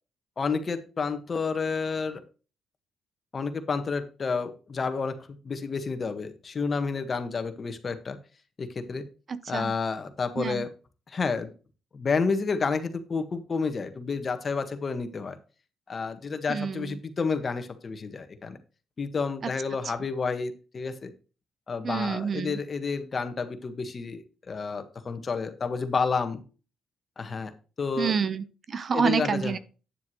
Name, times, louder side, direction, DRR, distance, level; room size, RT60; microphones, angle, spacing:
voice 1, 0.4-2.2 3.3-5.2 5.4-8.2 8.6-9.0 9.5-10.7 11.1-11.5 11.9-15.4 15.9-18.6 19.0-21.1 21.7-26.4 27.2-27.5 27.8-28.2 28.9-29.6, left 4 dB, 40° left, 9 dB, 1.5 m, -30 dB
voice 2, 9.3-9.7 10.4-10.6 16.5-17.0 21.8-22.6 28.0-29.6, right 6 dB, 45° right, 15 dB, 0.8 m, -28 dB
9.7 x 7.1 x 3.1 m, 0.34 s
cardioid pair, 90°, 0 cm